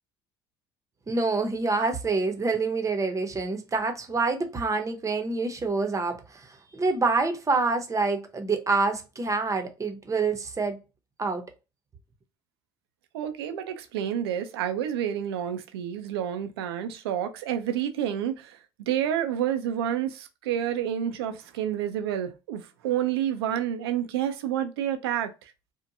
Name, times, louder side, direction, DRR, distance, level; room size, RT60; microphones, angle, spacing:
voice 1, 1.1-10.8 11.2-11.4, right 3 dB, 25° right, 0.7 m, -27 dB
voice 2, 13.1-25.5, right 10 dB, 90° right, 0.4 m, -29 dB
2.6 x 2.1 x 2.6 m
hypercardioid pair, 70°, 13 cm